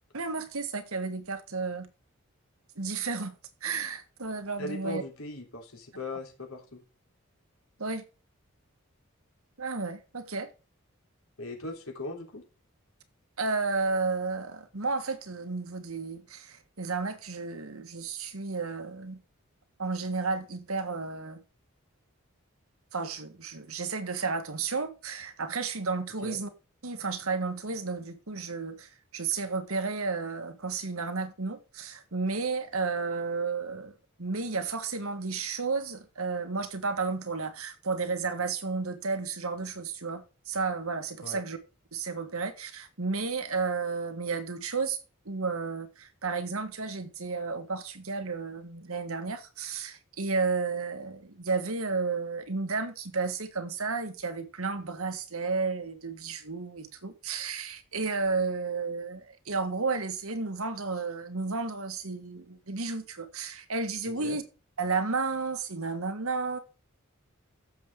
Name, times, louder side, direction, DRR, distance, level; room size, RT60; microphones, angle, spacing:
voice 1, 0.1-1.9 2.8-3.3 3.6-5.0 7.8-8.0 9.6-10.5 13.4-19.2 19.8-21.4 22.9-26.5 26.8-33.9 34.2-41.6 41.9-45.0 45.2-64.4 64.8-66.6, right 4 dB, 80° right, 1.7 m, -32 dB
voice 2, 4.6-6.8 11.4-12.4 26.2-26.4 41.2-41.4 64.2-64.4, left 1 dB, 75° left, 3.5 m, -38 dB
15.0 x 7.2 x 3.8 m
head